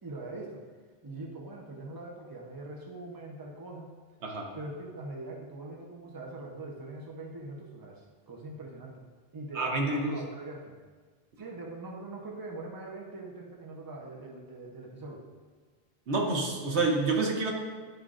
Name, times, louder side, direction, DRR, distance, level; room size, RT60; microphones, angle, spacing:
voice 1, 0.0-0.6 1.0-3.9 4.5-9.0 9.3-10.8 11.4-15.2, right 2 dB, 20° right, -1 dB, 0.7 m, -42 dB
voice 2, 9.5-10.3 16.1-17.5, right 3 dB, 75° right, 1 dB, 1.2 m, -28 dB
10.0 x 5.0 x 2.5 m, 1.4 s
omnidirectional pair, 1.2 m